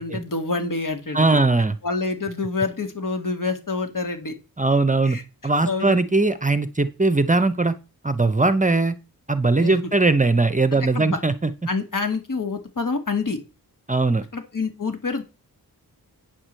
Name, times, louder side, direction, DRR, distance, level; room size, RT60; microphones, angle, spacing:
voice 1, 0.0-1.4 1.8-4.3 5.0-5.2 5.6-6.0 9.6-9.8 10.7-11.2 11.7-13.4 14.3-15.2, left 4 dB, 60° left, 5 dB, 2.3 m, -27 dB
voice 2, 1.1-1.8 4.6-7.7 8.0-9.0 9.3-11.5 13.9-14.2, right 3 dB, 20° right, 12 dB, 0.7 m, -20 dB
9.0 x 4.9 x 7.5 m, 0.30 s
wide cardioid pair, 105°, 36 cm